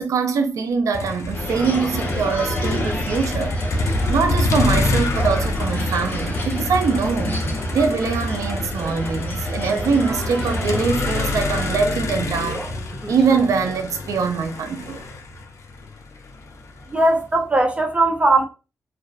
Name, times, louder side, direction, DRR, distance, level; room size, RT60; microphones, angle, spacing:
voice 1, 0.0-7.5 7.7-12.7 13.1-15.0, right 5 dB, 75° right, 0.5 m, -23 dB
Motor vehicle (road), 0.9-17.1, left 2 dB, 65° left, 0.4 m, -26 dB
sound 1, 1.3-11.7, left 1 dB, 35° left, 0.8 m, -30 dB
sound 2, 8.8-11.3 11.6-13.7, right 1 dB, ahead, 1.2 m, -36 dB
voice 2, 16.9-18.4, right 2 dB, 25° right, 0.8 m, -18 dB
2.4 x 2.2 x 2.3 m
cardioid pair, 65°, 6 cm